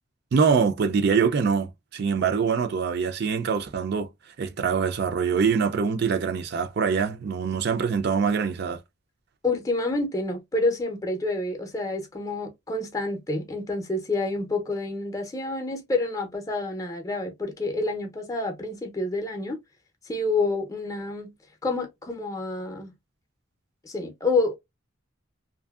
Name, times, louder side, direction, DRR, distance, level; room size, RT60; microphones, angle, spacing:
voice 1, 0.3-4.1 4.4-8.8, right 6 dB, 50° right, 0.4 m, -24 dB
voice 2, 9.4-19.6 20.0-21.3 21.6-22.9 23.8-24.6, left 2 dB, 15° left, 0.6 m, -28 dB
2.7 x 2.6 x 2.3 m
head